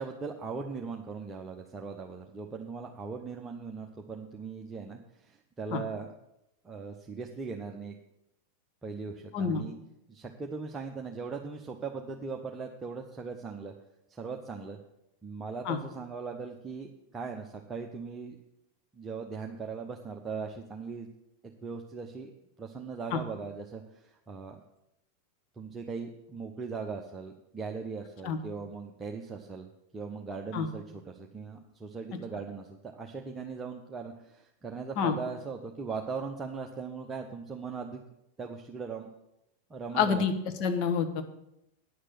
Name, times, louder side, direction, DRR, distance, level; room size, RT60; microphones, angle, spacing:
voice 1, 0.0-6.1 6.6-8.0 8.8-9.7 10.1-13.7 14.1-14.8 15.2-18.4 18.9-21.1 21.6-22.3 22.6-24.6 25.6-29.7 29.9-38.0 38.4-39.1 39.7-40.2, right 5 dB, 15° right, 1 dB, 0.9 m, -39 dB
voice 2, 9.3-9.6 15.6-15.8 23.1-23.2 28.2-28.4 30.5-30.7 35.0-35.1 39.9-40.3 40.6-41.2, left 6 dB, 40° left, 6 dB, 1.3 m, -27 dB
10.0 x 6.5 x 7.6 m, 0.84 s
figure-of-eight pair, 90°, 0 cm